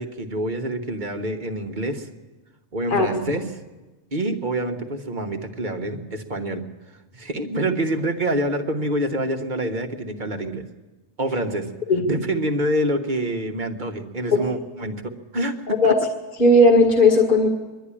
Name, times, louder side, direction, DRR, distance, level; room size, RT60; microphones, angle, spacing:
voice 1, 0.0-2.1 2.7-3.5 4.1-6.6 7.1-10.6 11.2-11.7 12.1-15.9, right 1 dB, 35° right, 4 dB, 1.4 m, -26 dB
voice 2, 16.4-17.5, left 2 dB, 35° left, 3 dB, 2.1 m, -16 dB
24.0 x 12.0 x 10.0 m, 1.2 s
omnidirectional pair, 1.5 m